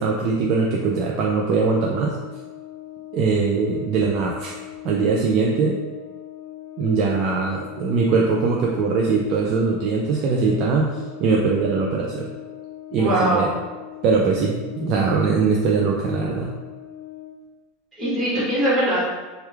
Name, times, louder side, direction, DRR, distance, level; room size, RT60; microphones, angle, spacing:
voice 1, 0.0-2.2 3.1-4.5 4.8-5.8 6.8-10.9 11.2-12.3 12.9-13.5 14.0-16.5, right 4 dB, 35° right, -2 dB, 0.3 m, -21 dB
Brass instrument, 1.0-17.4, left 13 dB, 50° left, 0.4 m, -40 dB
voice 2, 13.0-13.5 18.0-19.0, right 1 dB, 10° right, -10 dB, 1.2 m, -21 dB
3.0 x 2.3 x 3.3 m, 1.3 s
supercardioid pair, 175°, 0 cm